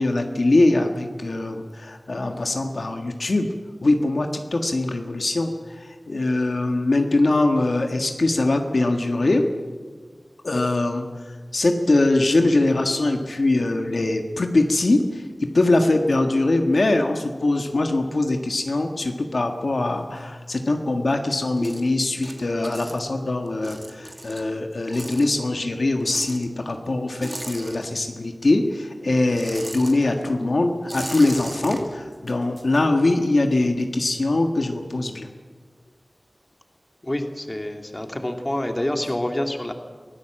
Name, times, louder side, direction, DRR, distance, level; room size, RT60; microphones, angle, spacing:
voice 1, 0.0-3.5 3.8-9.5 10.4-11.1 11.5-15.2 15.5-35.3, left 2 dB, 75° left, 4 dB, 1.6 m, -22 dB
sound 1, 19.2-20.8 21.1-28.4 28.6-33.3, right 1 dB, 30° right, 2.4 m, -38 dB
voice 2, 37.0-39.7, left 1 dB, 25° left, 4 dB, 2.6 m, -27 dB
23.5 x 16.0 x 7.8 m, 1.5 s
wide cardioid pair, 55°, 0 cm